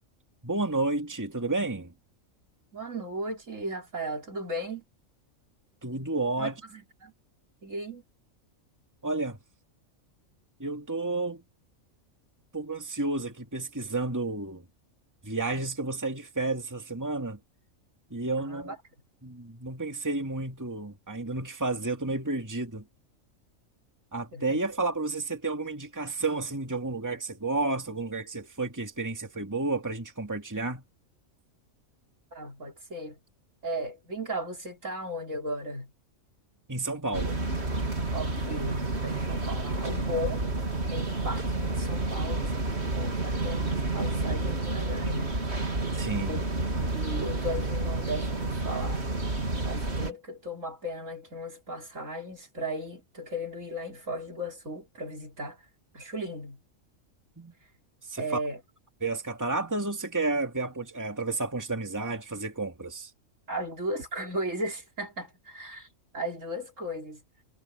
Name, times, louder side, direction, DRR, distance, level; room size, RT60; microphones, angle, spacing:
voice 1, 0.4-1.9 5.8-6.5 9.0-9.4 10.6-11.4 12.5-14.6 15.2-17.4 18.1-18.7 19.2-22.8 24.1-30.8 36.7-37.5 45.9-46.5 57.4-57.5 58.1-58.4 59.0-63.1, right 3 dB, 15° right, 2.4 m, -31 dB
voice 2, 2.7-4.8 6.4-7.1 7.6-8.0 18.4-18.8 24.3-24.6 32.3-33.2 33.6-35.9 38.1-40.5 40.9-45.3 46.3-49.1 49.6-55.6 55.9-56.6 58.2-58.6 63.5-65.9 66.1-67.2, equal, 65° right, 4.8 m, -36 dB
sound 1, 37.1-50.1, right 2 dB, 50° right, 3.5 m, -30 dB
omnidirectional pair, 1.4 m